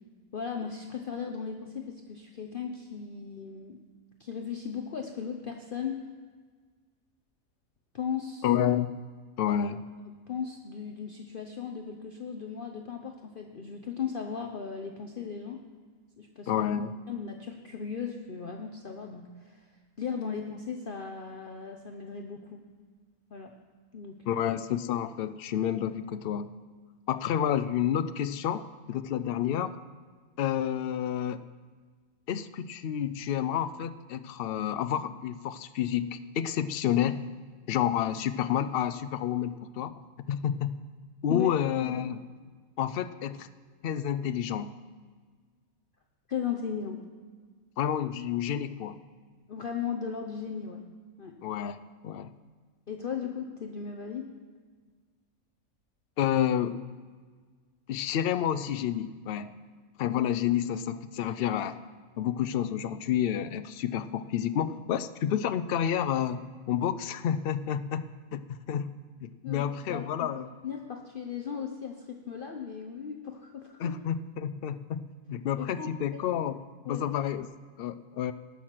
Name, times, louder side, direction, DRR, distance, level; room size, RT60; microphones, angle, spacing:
voice 1, 0.3-3.8 4.2-6.0 7.9-8.5 9.5-9.6 10.3-15.6 16.2-16.5 17.1-19.7 20.0-22.6 23.3-23.5 23.9-24.4 41.3-41.6 46.3-47.0 49.5-50.8 51.2-51.3 52.9-54.3 69.4-70.1 70.6-73.9 75.6-75.9 76.8-77.1, left 7 dB, 45° left, 3 dB, 0.8 m, -37 dB
voice 2, 8.4-9.0 9.4-9.8 16.5-16.9 24.3-26.5 27.1-29.8 30.4-31.5 32.3-37.2 37.7-40.0 40.3-40.8 41.2-42.3 42.8-43.5 43.8-44.7 47.8-49.0 51.4-52.3 56.2-56.9 57.9-59.6 60.0-61.8 62.2-68.9 69.2-70.5 73.8-77.5 77.8-78.3, left 9 dB, 75° left, 12 dB, 0.5 m, -29 dB
19.0 x 6.3 x 5.9 m, 1.5 s
omnidirectional pair, 1.5 m